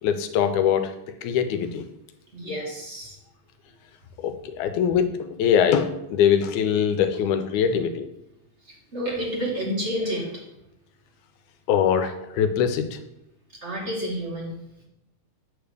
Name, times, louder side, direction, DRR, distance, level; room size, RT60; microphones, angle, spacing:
voice 1, 0.0-0.9 1.2-1.9 4.2-5.1 5.4-8.1 11.7-13.0, left 8 dB, 85° left, 8 dB, 2.1 m, -22 dB
voice 2, 2.3-3.2 8.6-10.4 13.6-14.5, equal, 30° right, -3 dB, 1.6 m, -30 dB
8.8 x 3.5 x 6.6 m, 0.86 s
omnidirectional pair, 3.4 m